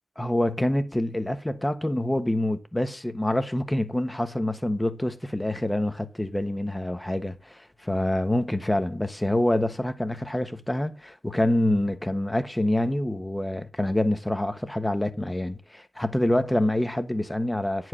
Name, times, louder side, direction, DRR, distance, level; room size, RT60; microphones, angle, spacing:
voice 1, 0.2-17.9, left 1 dB, 15° left, 1.2 m, -26 dB
9.8 x 4.8 x 7.4 m
wide cardioid pair, 70°, 0 cm